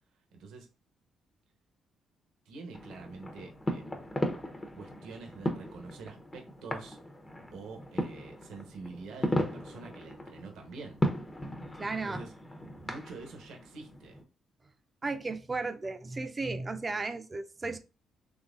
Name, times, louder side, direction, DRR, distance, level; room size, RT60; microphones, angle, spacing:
voice 1, 0.3-0.7 2.4-4.0 4.7-7.0 7.5-11.1 12.0-12.3 12.8-14.2, right 4 dB, 85° right, 0.9 m, -46 dB
sound 1, 2.7-14.2, left 1 dB, 20° left, 0.8 m, -36 dB
voice 2, 11.8-12.2 15.0-17.8, right 3 dB, 25° right, 0.5 m, -34 dB
3.8 x 3.2 x 2.5 m
cardioid pair, 90°, 0 cm